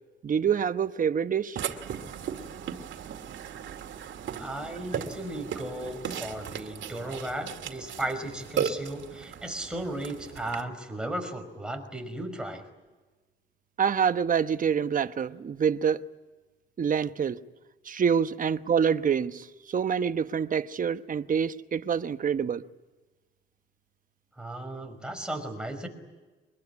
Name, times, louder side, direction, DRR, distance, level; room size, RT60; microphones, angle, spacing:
voice 1, 0.2-1.6 13.8-16.1 16.8-17.4 17.8-22.6, right 7 dB, 45° right, 1.1 m, -26 dB
Burping eructation, 1.6-10.6, right 8 dB, 70° right, 2.4 m, -36 dB
voice 2, 4.4-12.6 24.4-25.9, right 1 dB, 5° right, 5.3 m, -35 dB
24.0 x 21.5 x 9.7 m
cardioid pair, 90°, 20 cm